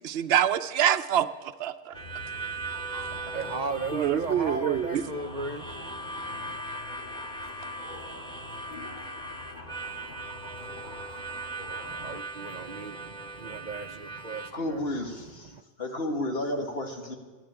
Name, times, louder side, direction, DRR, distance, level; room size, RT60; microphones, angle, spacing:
voice 1, 0.0-2.0 3.9-5.0, right 10 dB, 75° right, 0.9 m, -26 dB
sound 1, 1.9-12.2, left 2 dB, 45° left, 2.0 m, -45 dB
Harmonica, 1.9-14.5, right 2 dB, 5° left, 1.2 m, -39 dB
voice 2, 3.1-6.6 11.9-14.8 15.5-15.6, right 3 dB, 50° right, 0.8 m, -36 dB
voice 3, 14.5-15.5 15.8-17.1, left 1 dB, 70° left, 2.2 m, -32 dB
14.5 x 11.5 x 8.8 m
omnidirectional pair, 1.1 m